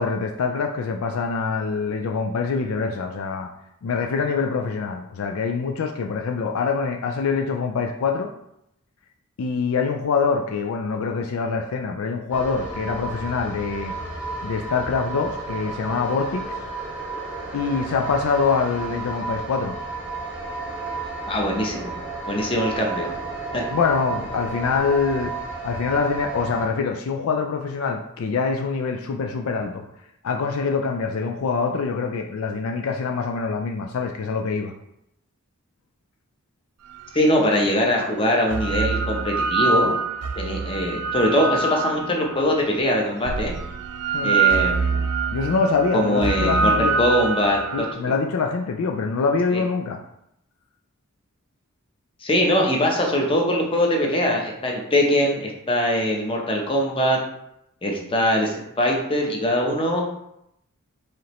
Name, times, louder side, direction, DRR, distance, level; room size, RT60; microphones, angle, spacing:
voice 1, 0.0-3.5 3.8-8.3 9.4-13.9 14.4-16.5 17.5-19.8 23.7-25.3 25.6-29.9 30.2-34.7 44.1-44.4 45.3-47.0 47.7-50.0, left 5 dB, 65° left, 3 dB, 0.4 m, -24 dB
sound 1, 12.3-26.7, right 3 dB, 5° right, 0.9 m, -32 dB
voice 2, 21.3-21.9 22.3-23.1 23.5-23.6 37.1-40.0 40.4-43.5 44.2-45.0 45.9-47.8 49.5-49.6 52.2-57.2 57.8-60.0, equal, 25° left, 0 dB, 0.7 m, -22 dB
sound 2, 37.2-37.3 38.2-42.5 43.2-47.9, right 4 dB, 90° right, 0.4 m, -24 dB
4.9 x 2.9 x 3.0 m, 0.79 s
head